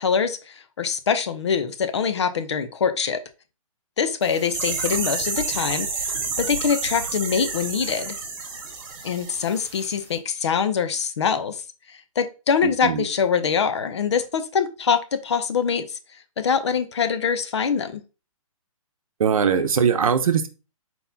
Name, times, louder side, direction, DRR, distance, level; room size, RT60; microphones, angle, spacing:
voice 1, 0.0-3.2 4.0-8.2 9.0-11.6 11.9-16.0 16.4-18.0, left 6 dB, 50° left, 10 dB, 0.7 m, -24 dB
sound 1, 4.2-9.9 10.1-10.2, right 4 dB, 40° right, 1.6 m, -30 dB
voice 2, 12.6-13.0 19.2-20.5, right 7 dB, 75° right, 9 dB, 0.8 m, -21 dB
4.2 x 4.1 x 2.7 m, 0.32 s
hypercardioid pair, 170°, 18 cm